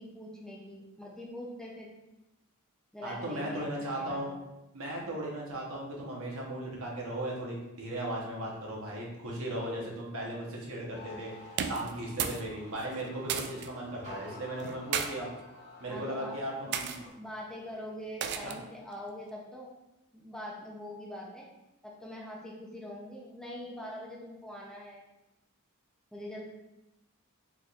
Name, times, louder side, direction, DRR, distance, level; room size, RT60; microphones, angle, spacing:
voice 1, 0.0-1.9 2.9-4.4 15.9-16.8 17.2-19.7 20.1-21.5 21.8-25.0 26.1-26.4, left 1 dB, 5° left, -4 dB, 0.5 m, -43 dB
voice 2, 3.0-4.3 4.7-11.3 11.7-15.3 15.8-17.0 18.4-18.5, right 1 dB, 65° right, -2 dB, 1.0 m, -37 dB
sound 1, 10.9-17.1, left 2 dB, 30° right, 1.3 m, -50 dB
sound 2, 11.5-12.5 12.7-13.7 14.6-15.1 15.9-16.1 16.7-17.0 18.2-18.7, right 7 dB, 50° right, 0.3 m, -34 dB
4.1 x 3.4 x 2.4 m, 0.94 s
head